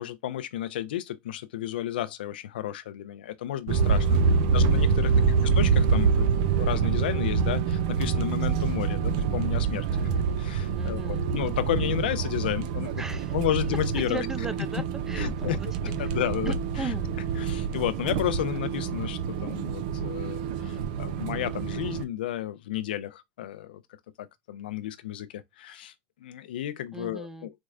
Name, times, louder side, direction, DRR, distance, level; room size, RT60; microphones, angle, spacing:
voice 1, 0.0-5.1 5.5-9.9 10.4-13.0 13.3-14.3 15.2-15.6 16.0-16.9 17.4-23.8 24.2-25.9 26.2-27.6, left 12 dB, 90° left, 0.4 m, -32 dB
sound 1, 3.7-22.0, right 5 dB, 70° right, 0.4 m, -26 dB
voice 2, 4.2-4.7 5.0-5.4 9.9-10.3 10.7-11.3 13.0-13.4 14.0-15.7 16.0-16.2 16.5-17.1 26.9-27.5, right 3 dB, 10° right, 0.5 m, -38 dB
4.3 x 2.1 x 2.4 m
supercardioid pair, 110°, 5 cm